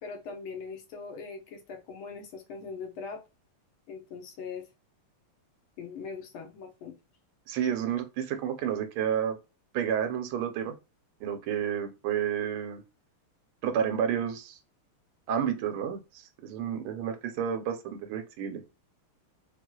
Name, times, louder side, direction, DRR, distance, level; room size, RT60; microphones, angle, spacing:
voice 1, 0.0-3.2 3.9-4.7 5.8-7.0, left 5 dB, 75° left, 1.7 m, -41 dB
voice 2, 7.5-9.4 9.7-10.8 11.2-12.8 13.6-14.6 15.3-16.0 16.4-18.8, right 8 dB, 80° right, 1.5 m, -30 dB
4.4 x 2.4 x 2.3 m
omnidirectional pair, 2.4 m